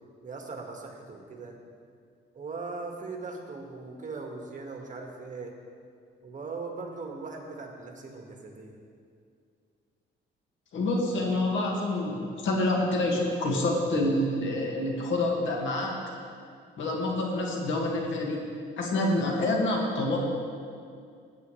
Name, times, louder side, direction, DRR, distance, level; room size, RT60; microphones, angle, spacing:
voice 1, 0.2-1.6 2.3-5.6 6.2-8.8, right 4 dB, 40° right, 2 dB, 1.7 m, -39 dB
voice 2, 10.7-16.0 16.8-18.4 18.8-20.2, left 2 dB, 70° left, 0 dB, 2.0 m, -27 dB
16.5 x 9.0 x 3.3 m, 2.3 s
cardioid pair, 90°, 20 cm